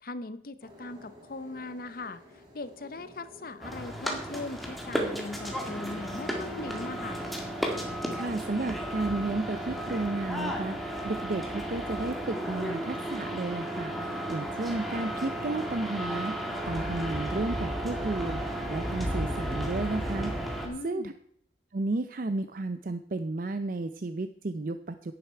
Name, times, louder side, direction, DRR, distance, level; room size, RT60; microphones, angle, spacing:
voice 1, 0.0-2.2 2.5-7.2 20.6-21.1, left 2 dB, 50° left, 13 dB, 0.7 m, -39 dB
sound 1, 0.6-10.1, left 1 dB, 25° right, 3.4 m, -52 dB
sound 2, 3.6-20.7, equal, ahead, 1.9 m, -33 dB
voice 2, 8.1-20.4 20.8-21.1 21.7-25.1, right 2 dB, 50° right, 10 dB, 0.5 m, -33 dB
10.5 x 10.5 x 4.5 m, 0.69 s
head